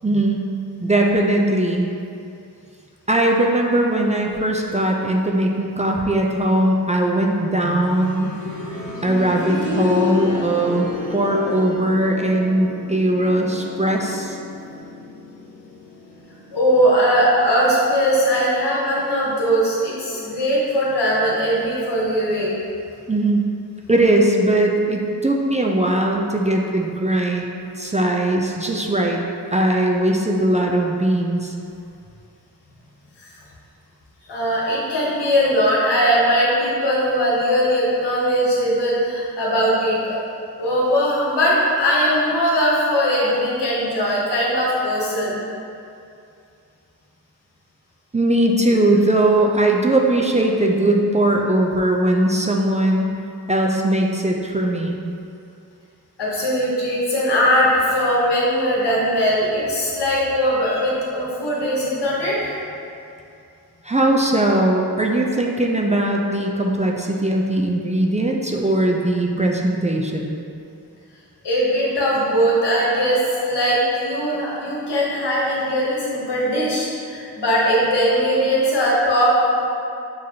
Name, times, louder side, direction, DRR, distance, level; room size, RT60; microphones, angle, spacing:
voice 1, 0.0-0.4 0.8-1.9 3.1-8.3 9.0-14.4 23.1-23.5 23.9-27.5 27.8-29.2 29.5-31.5 48.1-53.1 53.5-55.0 63.8-70.3, right 1 dB, 20° right, 0 dB, 0.4 m, -19 dB
sound 1, 7.6-18.4 18.7-18.8 19.7-19.8, left 4 dB, 50° left, 1.1 m, -31 dB
voice 2, 16.5-22.6 33.2-33.3 34.3-40.2 40.6-45.4 56.2-62.6 71.4-79.6, equal, 85° left, -6 dB, 1.1 m, -20 dB
6.3 x 2.5 x 2.8 m, 2.6 s
cardioid pair, 45°, 40 cm